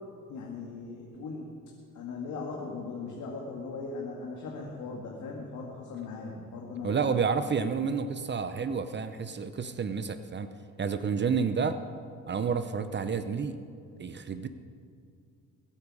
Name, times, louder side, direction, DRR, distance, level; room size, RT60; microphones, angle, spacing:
voice 1, 0.3-1.5 1.9-7.2, left 4 dB, 80° left, -2 dB, 2.0 m, -39 dB
voice 2, 6.8-10.5 10.8-11.8 12.3-13.6 14.0-14.5, right 6 dB, 35° right, 10 dB, 0.7 m, -30 dB
22.0 x 8.6 x 4.9 m, 2.4 s
cardioid pair, 90°, 30 cm